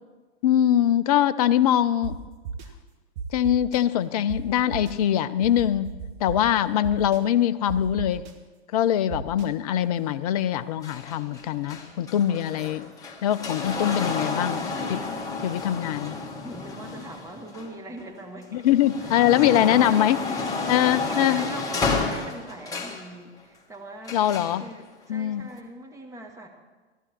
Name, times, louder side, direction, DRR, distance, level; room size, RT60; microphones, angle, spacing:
voice 1, 0.4-2.2 3.3-8.2 8.7-12.9 13.2-15.0 15.4-16.2 18.5-20.2 20.7-21.4 24.1-24.7 25.1-25.4, left 11 dB, 35° left, 13 dB, 0.4 m, -23 dB
sound 1, 2.0-2.1 2.4-2.7 3.2-3.8 4.3-4.4 4.7-4.9 5.4-6.4 6.8-7.2 7.7-8.3 9.1-9.4, right 6 dB, 45° right, 1.5 m, -34 dB
sound 2, 10.8-18.0 18.5-23.1 24.0-24.6 25.5-25.6, left 4 dB, 10° left, 1.4 m, -31 dB
voice 2, 12.0-12.9 16.4-18.7 19.0-24.3 24.6-26.5, right 1 dB, 10° right, 3 dB, 1.4 m, -41 dB
15.5 x 12.5 x 4.3 m, 1.3 s
figure-of-eight pair, 100°, 34 cm